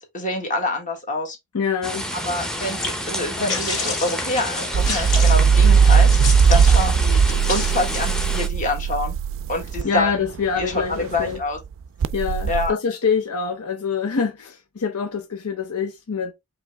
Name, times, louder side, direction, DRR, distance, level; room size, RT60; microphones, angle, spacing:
voice 1, 0.0-1.4 2.1-9.1 9.5-10.1 10.6-11.6 12.5-12.7, left 2 dB, 35° left, 1.6 m, -26 dB
voice 2, 1.5-2.1 9.8-11.4 12.1-16.3, left 6 dB, 75° left, 0.7 m, -25 dB
sound 1, 1.8-8.5, equal, 5° left, 0.7 m, -30 dB
sound 2, 2.2-8.4, left 3 dB, 60° left, 2.2 m, -31 dB
sound 3, 4.7-11.4 12.0-12.7, right 6 dB, 60° right, 0.3 m, -18 dB
4.9 x 3.0 x 3.3 m
head